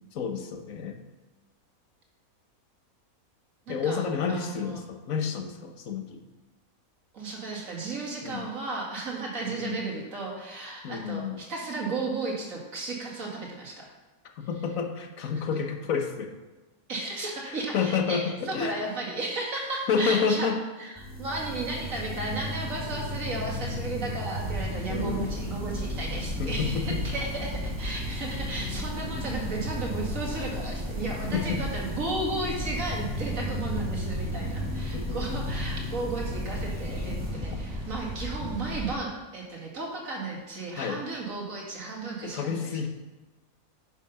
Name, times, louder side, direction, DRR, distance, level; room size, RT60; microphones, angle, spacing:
voice 1, 0.1-1.0 3.7-6.2 8.2-8.5 9.5-9.8 10.8-11.4 14.4-16.3 17.5-18.8 19.9-20.7 24.9-25.3 26.4-27.0 31.3-31.6 34.9-35.4 38.4-38.5 40.8-41.0 42.2-42.9, left 6 dB, 70° left, 5 dB, 1.3 m, -30 dB
voice 2, 3.7-4.0 4.3-4.8 7.1-13.9 15.3-15.4 16.9-20.5 20.8-42.7, right 3 dB, 65° right, -2 dB, 2.4 m, -34 dB
sound 1, 21.0-38.5, left 2 dB, 5° right, 2.0 m, -36 dB
sound 2, 24.3-38.9, equal, 30° right, 1.9 m, -36 dB
9.7 x 5.7 x 5.5 m, 1.1 s
omnidirectional pair, 1.5 m